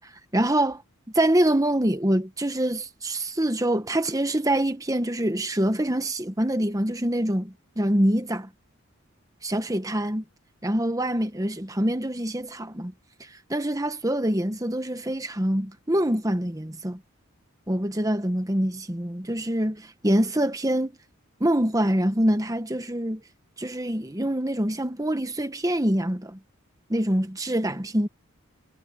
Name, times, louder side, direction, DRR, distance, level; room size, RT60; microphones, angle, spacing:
voice 1, 0.3-0.8 1.1-8.5 9.4-10.2 10.6-12.9 13.5-17.0 17.7-20.9 21.4-23.2 23.6-26.4 26.9-28.1, right 1 dB, 15° right, 1.2 m, -25 dB
head